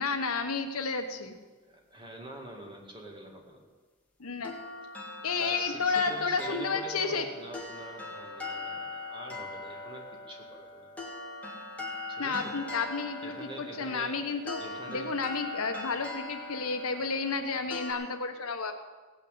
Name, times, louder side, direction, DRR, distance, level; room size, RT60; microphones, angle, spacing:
voice 1, 0.0-1.3 4.2-4.5 5.2-7.3 12.2-14.6 14.9-18.8, left 4 dB, 70° left, 6 dB, 1.1 m, -31 dB
voice 2, 1.6-3.6 5.4-10.9 12.1-12.5 13.2-15.1, right 1 dB, 20° right, 0 dB, 2.2 m, -45 dB
sound 1, 4.4-17.9, left 2 dB, 5° left, 1.8 m, -41 dB
17.0 x 6.4 x 8.5 m, 1.3 s
head